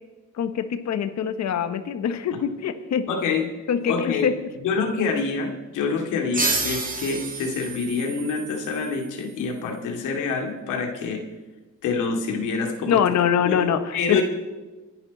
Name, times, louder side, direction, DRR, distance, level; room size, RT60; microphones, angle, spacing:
voice 1, 0.4-3.1 3.7-4.3 12.9-14.2, left 8 dB, 65° left, 9 dB, 1.4 m, -23 dB
voice 2, 3.1-3.5 3.8-4.3 4.6-11.2 11.8-13.0 13.4-13.7 13.9-14.2, left 5 dB, 90° left, 3 dB, 2.5 m, -26 dB
sound 1, 6.3-9.6, right 3 dB, 30° right, 2.4 m, -30 dB
26.5 x 11.0 x 4.1 m, 1.2 s
cardioid pair, 90°, 30 cm